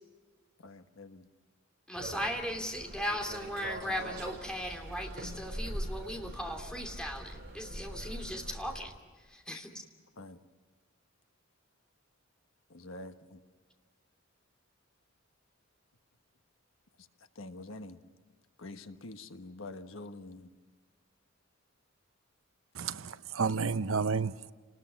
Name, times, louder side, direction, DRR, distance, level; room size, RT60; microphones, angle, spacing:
voice 1, 0.6-1.3 9.5-9.6 10.2-10.4 12.7-13.4 17.4-18.0 18.6-20.5, left 2 dB, 80° left, 1.4 m, -46 dB
voice 2, 1.9-8.9 9.3-9.8, equal, 5° left, 2.8 m, -37 dB
sound 1, 2.0-8.8, right 1 dB, 55° right, 6.1 m, -42 dB
voice 3, 22.8-24.5, right 5 dB, 90° right, 0.7 m, -31 dB
29.5 x 20.5 x 5.9 m
head